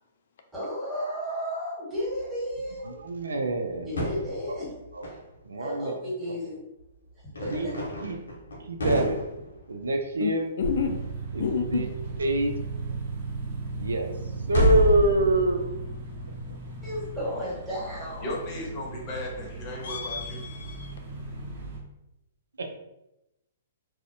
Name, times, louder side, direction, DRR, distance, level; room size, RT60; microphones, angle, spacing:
voice 1, 0.5-3.0 3.8-4.7 5.6-6.6 7.2-7.7 16.8-18.3, equal, 15° right, -8 dB, 1.5 m, -33 dB
sound 1, 2.2-2.3 2.5-3.0 3.5-5.2 6.8-6.9 7.3-10.3 10.6-11.7 12.0-12.3 13.6-13.9 14.4-17.3 17.8-18.0 18.6-18.7 19.2-19.3 19.5-19.6 20.0-20.1 21.2-21.3, equal, 85° left, 0.7 m, -30 dB
voice 2, 2.8-4.1 4.9-5.0 5.5-5.9 7.5-7.7 8.0-8.2 8.7-9.2 9.7-10.5 11.3-11.4 11.7-11.9 12.2-12.5 13.8-14.1 14.5-15.6 22.6-22.7, right 1 dB, 90° right, 4 dB, 0.4 m, -25 dB
voice 3, 10.2-11.0 11.4-11.9 19.8-20.9, left 6 dB, 65° left, 5 dB, 0.3 m, -30 dB
sound 2, 10.6-21.8, right 3 dB, 50° right, 1.0 m, -37 dB
voice 4, 18.2-20.4, left 1 dB, 30° left, -3 dB, 0.8 m, -35 dB
2.5 x 2.0 x 2.6 m, 0.90 s
hypercardioid pair, 130°, 0 cm